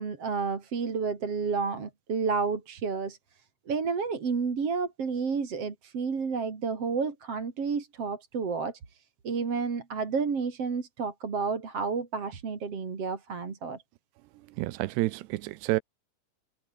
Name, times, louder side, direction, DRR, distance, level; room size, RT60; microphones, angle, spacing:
voice 1, 0.0-3.2 3.7-9.0 9.2-13.8, right 5 dB, 35° right, 3.7 m, -31 dB
voice 2, 14.6-15.8, right 19 dB, 80° right, 2.7 m, -29 dB
omnidirectional pair, 5.2 m